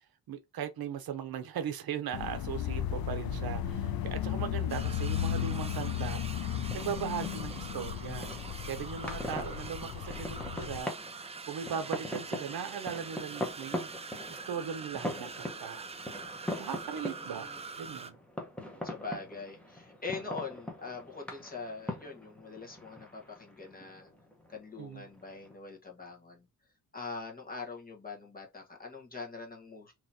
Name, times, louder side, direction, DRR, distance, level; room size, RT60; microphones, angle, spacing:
voice 1, 0.3-6.2 6.7-8.3 8.7-10.9 11.5-13.9 14.3-15.9 16.6-18.1 24.8-25.0, right 8 dB, 70° right, 0.7 m, -38 dB
sound 1, 2.1-10.8, left 10 dB, 65° left, 0.6 m, -35 dB
sound 2, 4.7-18.1, right 4 dB, 20° right, 0.3 m, -44 dB
sound 3, 6.5-25.5, left 1 dB, 5° left, 1.0 m, -42 dB
voice 2, 17.0-17.6 18.8-24.1 24.5-26.5 26.9-29.9, left 4 dB, 25° left, 1.2 m, -43 dB
3.8 x 3.0 x 2.7 m
wide cardioid pair, 120°, 38 cm